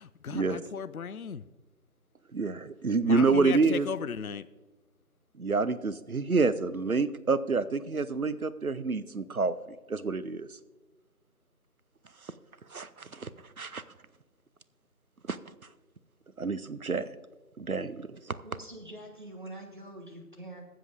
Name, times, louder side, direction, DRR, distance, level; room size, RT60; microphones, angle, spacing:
voice 1, 0.0-1.4 3.0-4.5, left 7 dB, 65° left, 16 dB, 0.5 m, -36 dB
voice 2, 2.3-3.9 5.4-9.5 9.9-10.5 12.7-13.3 13.6-13.8 15.3-15.4 16.4-17.1 17.6-18.4, right 4 dB, 65° right, 15 dB, 0.7 m, -28 dB
voice 3, 18.4-20.6, right 1 dB, 30° right, 0 dB, 1.4 m, -45 dB
21.0 x 7.6 x 2.6 m, 1.2 s
figure-of-eight pair, 170°, 47 cm